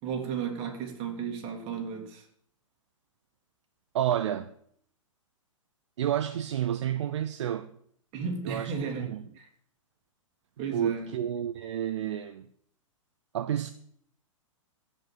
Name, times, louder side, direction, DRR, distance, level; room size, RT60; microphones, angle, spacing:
voice 1, 0.0-2.2 8.1-9.5 10.6-11.1, right 6 dB, 35° right, 2.7 m, -34 dB
voice 2, 3.9-4.5 6.0-7.7 8.4-8.7 9.0-9.3 10.7-12.5 13.3-13.7, right 10 dB, 60° right, 0.7 m, -30 dB
16.0 x 5.4 x 7.7 m
figure-of-eight pair, 115°, 17 cm